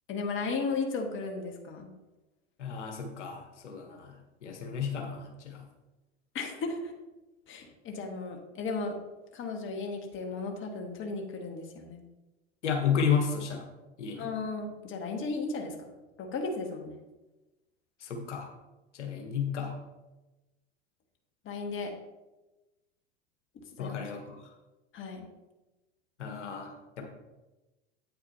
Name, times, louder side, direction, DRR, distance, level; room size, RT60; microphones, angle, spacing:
voice 1, 0.1-1.9 6.3-6.9 7.5-9.0 9.3-12.0 14.2-15.8 16.2-17.0 21.5-21.9 23.6-24.0 24.9-25.3, left 4 dB, 35° left, 2 dB, 1.6 m, -35 dB
voice 2, 2.6-4.1 4.4-5.6 12.6-13.7 14.0-14.3 18.0-18.5 18.9-19.7 23.8-24.4 26.2-27.0, left 7 dB, 85° left, 3 dB, 1.4 m, -32 dB
8.7 x 8.6 x 2.8 m, 1.1 s
hypercardioid pair, 95°, 35 cm